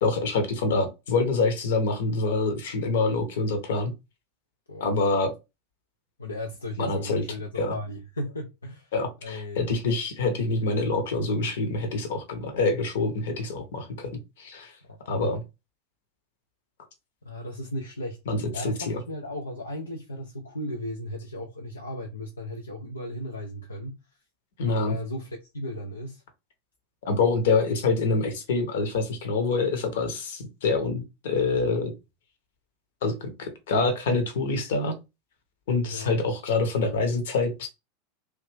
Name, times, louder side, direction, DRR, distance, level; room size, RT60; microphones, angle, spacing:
voice 1, 0.0-3.9 4.8-5.3 6.8-7.2 7.6-7.7 8.9-14.7 15.1-15.4 18.3-19.0 24.6-25.0 27.0-31.9 33.0-35.0 35.7-37.7, left 3 dB, 60° left, 1.0 m, -26 dB
voice 2, 4.7-5.0 6.2-8.9 9.2-9.7 13.3-13.4 14.9-15.0 17.2-18.2 18.5-24.0 24.7-26.2 35.9-36.1, left 1 dB, 80° left, 0.5 m, -36 dB
3.2 x 2.6 x 3.3 m
figure-of-eight pair, 85°, 0 cm